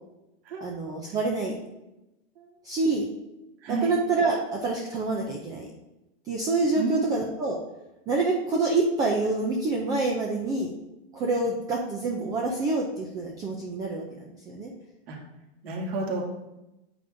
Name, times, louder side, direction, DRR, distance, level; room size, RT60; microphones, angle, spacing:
voice 1, 0.6-1.6 2.6-3.1 3.7-5.7 6.3-7.6 8.1-10.7 11.1-14.7, right 3 dB, 10° right, 0 dB, 0.3 m, -27 dB
voice 2, 3.6-3.9 6.8-7.2 15.1-15.2 15.6-16.2, right 3 dB, 65° right, -2 dB, 2.4 m, -30 dB
9.0 x 8.6 x 2.6 m, 0.97 s
supercardioid pair, 155°, 33 cm